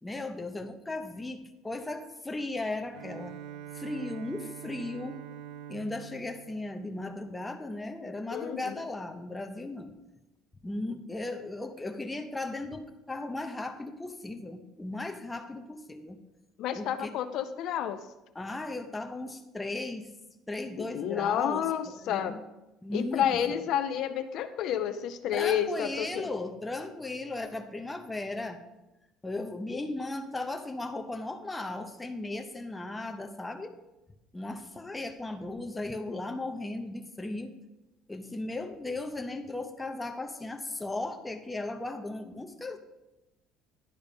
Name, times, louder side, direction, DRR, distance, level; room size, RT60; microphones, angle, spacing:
voice 1, 0.0-3.4 3.7-5.2 5.7-9.9 10.6-16.2 16.7-17.1 18.3-20.1 20.5-22.4 22.8-23.7 25.3-28.6 29.2-33.7 34.3-37.5 38.1-42.8, left 2 dB, 10° left, 5 dB, 0.6 m, -36 dB
Bowed string instrument, 2.9-7.6, right 10 dB, 65° right, 0.3 m, -45 dB
voice 2, 8.3-8.7 16.6-18.0 20.8-22.3 22.9-26.3, left 9 dB, 55° left, 10 dB, 0.4 m, -30 dB
10.5 x 5.2 x 5.2 m, 1.0 s
cardioid pair, 165°, 0 cm